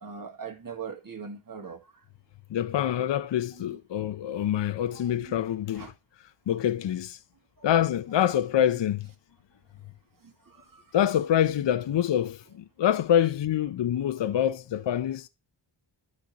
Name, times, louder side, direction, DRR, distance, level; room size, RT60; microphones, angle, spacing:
voice 1, 0.0-1.8 3.5-3.8 4.9-5.3 5.8-5.9 7.6-7.8 10.2-10.8, right 6 dB, 40° right, 1.7 m, -41 dB
voice 2, 2.5-5.9 6.5-7.2 7.6-9.1 10.9-15.3, left 10 dB, 60° left, 0.6 m, -26 dB
12.0 x 4.3 x 2.9 m
cardioid pair, 70°, 49 cm